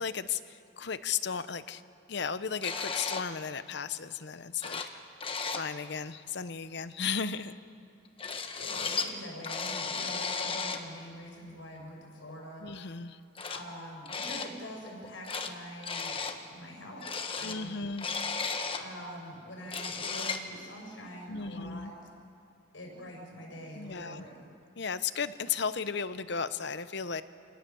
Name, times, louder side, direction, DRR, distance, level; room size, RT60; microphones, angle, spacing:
voice 1, 0.0-1.8 2.1-4.8 5.6-7.6 12.6-13.2 17.4-18.1 21.3-21.9 23.8-24.2 24.8-27.2, left 6 dB, 60° left, 13 dB, 0.8 m, -35 dB
sound 1, 2.6-3.3 4.3-4.4 4.6-5.0 5.2-5.7 8.2-9.1 9.4-10.9 12.3-12.4 13.4-13.6 14.1-14.5 14.9-15.5 15.8-16.4 17.0-18.9 19.3-19.4 19.6-20.5, left 5 dB, 25° left, 1.2 m, -34 dB
voice 2, 8.5-12.7 13.5-17.9 18.5-22.0 22.7-24.5, equal, 75° left, 0 dB, 6.0 m, -45 dB
28.0 x 19.0 x 7.0 m, 2.3 s
head